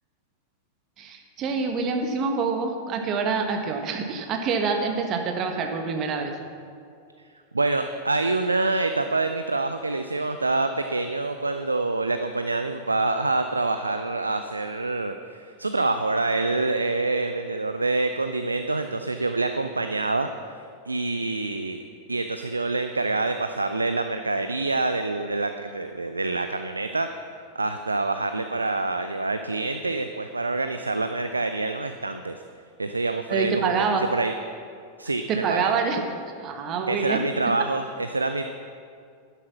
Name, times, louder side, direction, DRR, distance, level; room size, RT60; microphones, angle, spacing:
voice 1, 1.0-6.3 33.3-34.0 35.3-36.0 36.4-37.2, right 5 dB, 35° right, 4 dB, 1.5 m, -26 dB
voice 2, 7.5-21.8 22.1-27.1 27.5-32.4 32.8-34.3 35.0-35.7 36.9-38.5, right 3 dB, 80° right, 8 dB, 0.5 m, -26 dB
11.5 x 10.0 x 5.9 m, 2.3 s
figure-of-eight pair, 90°, 0 cm